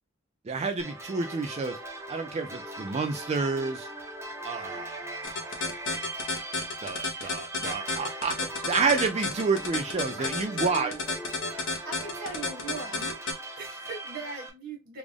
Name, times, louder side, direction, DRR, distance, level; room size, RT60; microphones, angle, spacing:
voice 1, 0.5-1.8 2.1-3.9 4.4-5.7 6.8-10.9, right 4 dB, 30° right, 0.3 m, -29 dB
sound 1, 0.8-14.5, right 2 dB, 15° right, 0.8 m, -40 dB
sound 2, 5.2-13.3, left 3 dB, 65° left, 1.0 m, -31 dB
voice 2, 10.2-11.0 11.8-13.2 13.5-15.0, right 2 dB, 60° right, 1.4 m, -40 dB
3.4 x 2.5 x 3.4 m
head